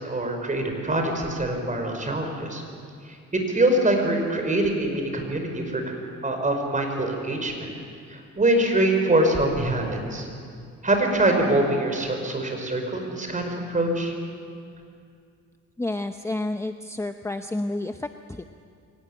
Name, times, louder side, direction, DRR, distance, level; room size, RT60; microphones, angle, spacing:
voice 1, 0.0-2.6 3.1-5.9 6.2-7.7 8.1-10.3 10.8-14.1, right 1 dB, 25° right, 3 dB, 5.2 m, -24 dB
voice 2, 15.8-18.4, left 2 dB, 10° left, 8 dB, 0.7 m, -30 dB
23.5 x 18.5 x 9.0 m, 2.3 s
cardioid pair, 90°, 30 cm